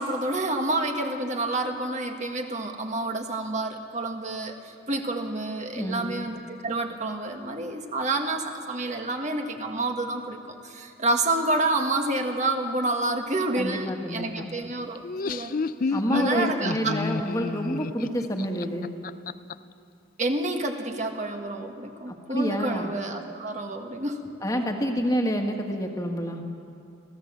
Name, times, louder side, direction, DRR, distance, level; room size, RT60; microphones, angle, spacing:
voice 1, 0.0-15.0 15.3-15.6 16.1-17.0 20.2-24.3, right 2 dB, 35° right, 4 dB, 1.7 m, -29 dB
voice 2, 5.8-6.1 13.6-14.5 15.9-18.9 22.1-22.9 24.4-26.4, equal, 15° left, 2 dB, 1.8 m, -28 dB
Laughter, 15.0-19.5, left 4 dB, 45° left, 0.4 m, -30 dB
26.0 x 16.0 x 7.5 m, 2.5 s
head